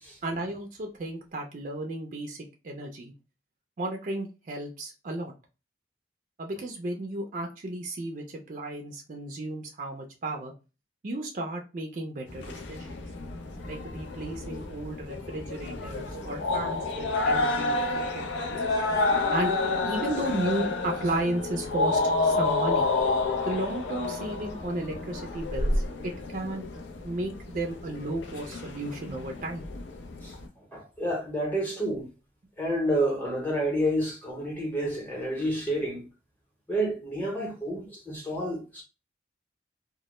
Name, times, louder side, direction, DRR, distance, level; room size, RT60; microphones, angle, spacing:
voice 1, 0.2-3.1 3.8-5.3 6.4-10.5 11.0-13.0 13.7-18.6 19.3-19.6 19.8-22.9 23.4-25.7 26.3-26.6 27.0-29.6, right 1 dB, 45° right, 0.4 m, -34 dB
sound 1, 12.3-30.5, left 3 dB, 85° left, 0.5 m, -29 dB
voice 2, 30.2-32.1 32.6-36.1 36.7-38.8, right 1 dB, 10° left, 0.8 m, -29 dB
2.1 x 2.0 x 2.9 m
head